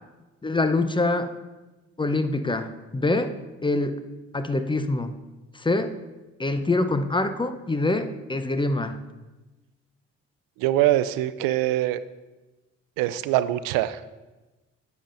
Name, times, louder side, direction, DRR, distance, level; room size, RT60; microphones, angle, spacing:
voice 1, 0.4-1.3 2.0-3.3 3.6-4.0 4.3-5.1 5.5-5.9 6.4-9.0, left 2 dB, 15° left, 10 dB, 0.7 m, -25 dB
voice 2, 10.6-12.0 13.0-14.0, right 14 dB, 70° right, 14 dB, 0.5 m, -23 dB
9.9 x 7.1 x 2.6 m, 1.1 s
hypercardioid pair, 45°, 36 cm